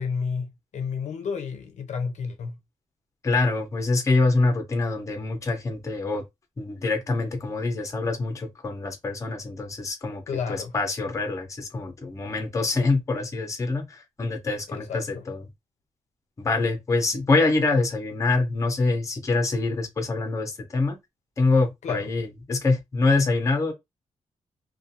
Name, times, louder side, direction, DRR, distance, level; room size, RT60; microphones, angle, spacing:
voice 1, 0.0-2.5 10.3-10.7 14.7-15.2 21.8-22.1, left 5 dB, 70° left, 0.5 m, -31 dB
voice 2, 3.2-6.2 6.6-10.2 10.5-15.4 16.4-21.0 21.4-23.7, left 3 dB, 25° left, 0.6 m, -25 dB
2.4 x 2.3 x 2.7 m
wide cardioid pair, 160°, 12 cm